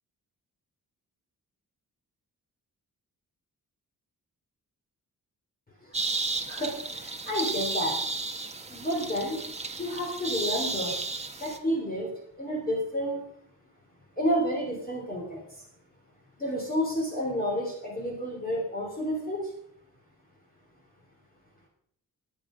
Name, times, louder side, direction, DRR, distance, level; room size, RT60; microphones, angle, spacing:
sound 1, 5.9-11.6, right 3 dB, 20° right, 1.4 m, -33 dB
voice 1, 6.5-8.0 8.7-9.4 9.8-11.0 11.4-12.1 12.4-13.2 14.2-15.6 16.4-19.5, equal, 25° left, -2 dB, 3.8 m, -30 dB
22.5 x 9.3 x 5.3 m, 0.71 s
wide cardioid pair, 160°, 36 cm